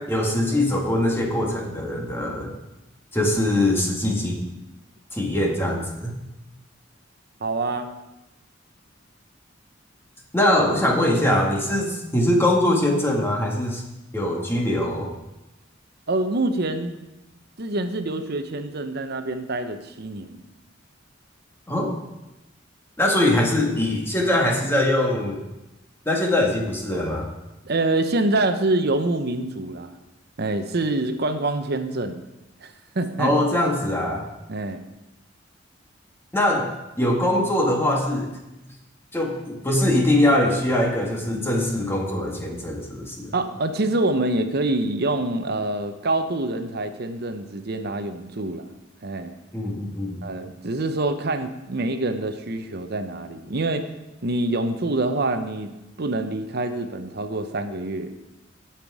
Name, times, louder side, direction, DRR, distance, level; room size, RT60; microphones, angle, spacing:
voice 1, 0.0-2.5 3.1-4.4 5.1-6.1 10.3-13.8 14.1-15.1 21.7-21.9 23.0-25.4 26.1-27.3 33.2-34.3 36.3-36.7 37.0-38.3 39.1-43.3 49.5-50.2, left 1 dB, 15° left, -1 dB, 1.7 m, -22 dB
voice 2, 7.4-7.9 16.1-17.0 17.6-20.4 27.6-29.9 30.4-32.2 32.6-33.3 34.5-34.8 43.3-48.7 49.0-49.3 50.2-53.9 54.2-58.1, right 2 dB, 60° right, 8 dB, 0.8 m, -26 dB
16.0 x 5.9 x 4.8 m, 0.99 s
head